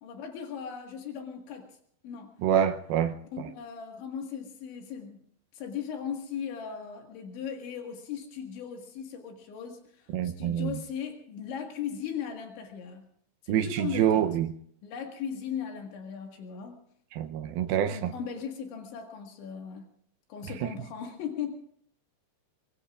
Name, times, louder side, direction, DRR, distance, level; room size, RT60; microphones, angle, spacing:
voice 1, 0.0-1.7 2.0-2.3 3.3-5.2 5.5-13.0 13.4-14.2 14.8-16.8 17.9-19.9 20.3-21.6, left 7 dB, 75° left, 4.1 m, -38 dB
voice 2, 2.4-3.5 10.1-10.7 13.5-14.5 17.1-18.1, right 10 dB, 85° right, 2.1 m, -26 dB
23.5 x 23.5 x 2.5 m
omnidirectional pair, 5.4 m